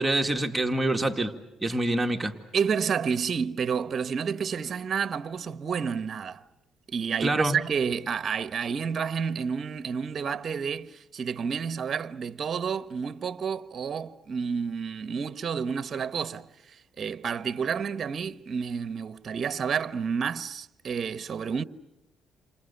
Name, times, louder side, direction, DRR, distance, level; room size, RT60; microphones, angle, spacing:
voice 1, 0.0-1.3 1.6-2.3 7.2-7.6, right 1 dB, 15° right, 2.0 m, -26 dB
voice 2, 2.5-6.4 6.9-21.6, right 6 dB, 45° right, 1.1 m, -30 dB
29.5 x 26.0 x 7.0 m
cardioid pair, 90°, 0 cm